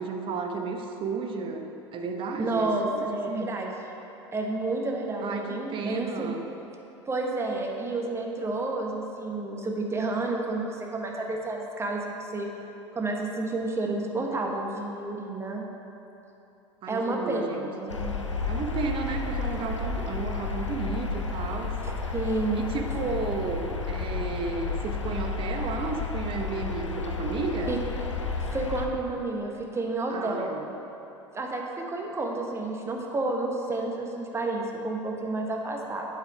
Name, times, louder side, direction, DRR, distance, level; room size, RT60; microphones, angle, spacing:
voice 1, 0.0-3.5 5.2-6.5 16.8-17.9 18.5-21.8 22.5-27.7 30.1-30.6, right 4 dB, 35° right, 4 dB, 0.8 m, -33 dB
voice 2, 2.4-3.9 4.3-6.4 7.1-12.5 12.9-15.7 16.9-18.1 21.8-23.0 27.7-27.8 28.5-30.5 31.3-36.1, right 2 dB, 15° right, 0 dB, 1.1 m, -30 dB
sound 1, 17.9-28.9, left 4 dB, 90° left, 0.5 m, -32 dB
7.9 x 5.8 x 5.1 m, 3.0 s
figure-of-eight pair, 75°, 15 cm